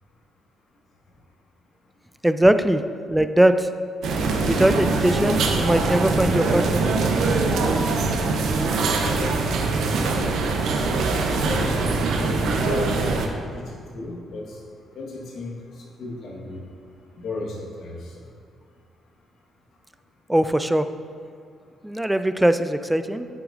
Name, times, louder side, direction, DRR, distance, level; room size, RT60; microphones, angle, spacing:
voice 1, 2.2-2.8 3.1-3.7 4.5-6.8 20.3-20.9 21.8-23.3, right 1 dB, 5° right, 10 dB, 0.3 m, -20 dB
sound 1, 4.0-13.3, right 3 dB, 75° right, 0.7 m, -23 dB
voice 2, 11.4-11.9 12.2-12.9 13.5-13.6 13.9-14.4 15.0-15.5 16.0-16.6 17.2-18.0, left 2 dB, 65° left, -2 dB, 1.3 m, -34 dB
8.9 x 6.1 x 2.5 m, 2.2 s
cardioid pair, 90°, 0 cm